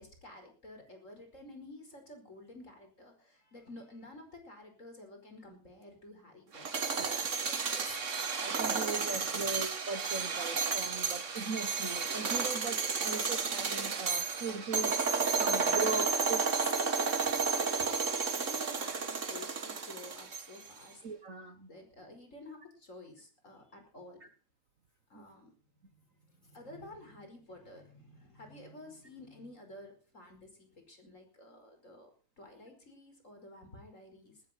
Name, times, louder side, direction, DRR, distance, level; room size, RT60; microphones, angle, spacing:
voice 1, 0.0-7.5 9.1-9.4 17.6-21.0 21.7-24.2 25.1-25.5 25.8-32.1 32.4-34.4, left 1 dB, 25° left, 5 dB, 5.1 m, -52 dB
sound 1, 6.5-20.7, right 5 dB, 35° right, 1.3 m, -32 dB
voice 2, 7.0-16.7 21.0-21.7 25.1-25.3, right 4 dB, 80° right, 9 dB, 0.7 m, -39 dB
19.0 x 14.5 x 4.3 m, 0.36 s
omnidirectional pair, 3.4 m